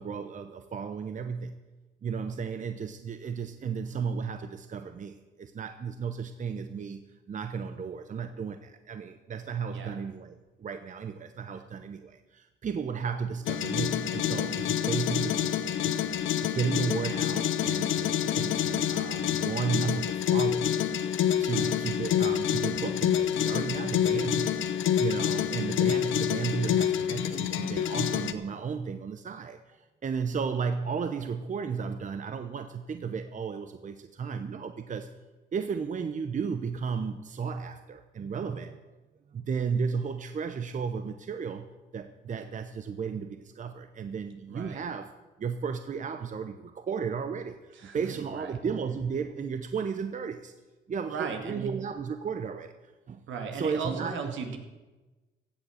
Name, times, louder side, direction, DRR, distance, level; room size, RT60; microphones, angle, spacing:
voice 1, 0.0-1.5 2.0-7.0 7.3-15.6 15.8-16.0 16.5-20.9 21.4-24.6 25.0-35.1 35.5-38.8 39.3-45.1 45.4-50.5 50.9-53.2 53.5-54.3, right 6 dB, 40° right, 9 dB, 0.8 m, -34 dB
sound 1, 13.5-28.3, left 10 dB, 75° left, 0.8 m, -27 dB
voice 2, 44.5-44.8 47.8-48.0 48.3-48.5 51.1-51.7 53.3-54.6, right 5 dB, 75° right, 4 dB, 2.1 m, -36 dB
15.5 x 7.9 x 6.5 m, 1.2 s
cardioid pair, 90°, 20 cm